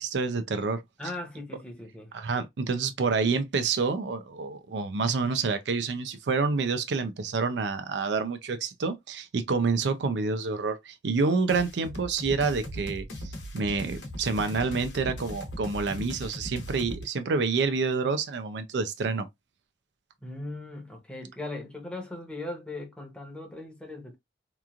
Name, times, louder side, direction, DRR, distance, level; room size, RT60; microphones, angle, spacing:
voice 1, 0.0-0.8 2.1-19.3, right 4 dB, 75° right, 0.4 m, -28 dB
voice 2, 1.0-2.1 20.2-24.2, left 2 dB, 5° left, 0.8 m, -39 dB
sound 1, 11.5-17.0, equal, 90° left, 0.9 m, -38 dB
3.0 x 2.4 x 2.3 m
head